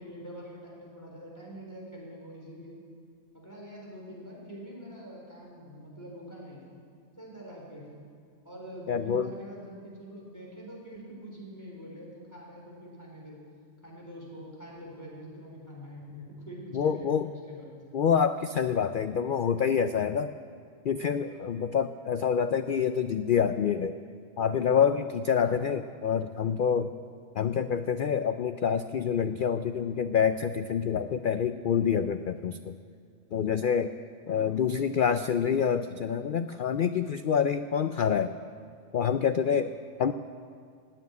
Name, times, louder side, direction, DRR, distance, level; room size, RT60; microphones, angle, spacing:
voice 1, 0.0-2.8 3.3-6.6 7.2-7.9 8.4-13.4 13.8-17.7 21.3-21.7 25.4-25.7 34.2-34.6, equal, 10° left, -3 dB, 4.3 m, -45 dB
voice 2, 8.9-9.3 16.7-17.3 17.9-20.3 20.8-23.9 24.4-26.9 27.4-32.7 33.3-33.9 34.3-38.3 38.9-40.1, left 7 dB, 90° left, 10 dB, 0.4 m, -27 dB
16.5 x 8.9 x 9.5 m, 2.1 s
omnidirectional pair, 1.5 m